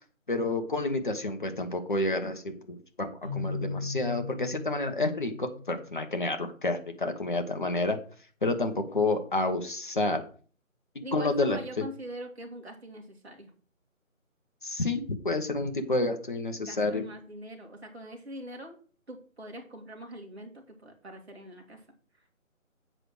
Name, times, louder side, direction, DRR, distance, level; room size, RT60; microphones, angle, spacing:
voice 1, 0.3-8.0 8.4-10.2 11.1-11.6 14.6-17.1, left 2 dB, 35° left, 6 dB, 1.1 m, -29 dB
Keyboard (musical), 3.2-6.1, left 4 dB, 10° left, 1.1 m, -37 dB
voice 2, 11.0-13.5 16.5-18.8 19.1-21.8, right 1 dB, 50° right, 2 dB, 2.4 m, -43 dB
7.7 x 4.9 x 6.1 m, 0.42 s
figure-of-eight pair, 170°, 41 cm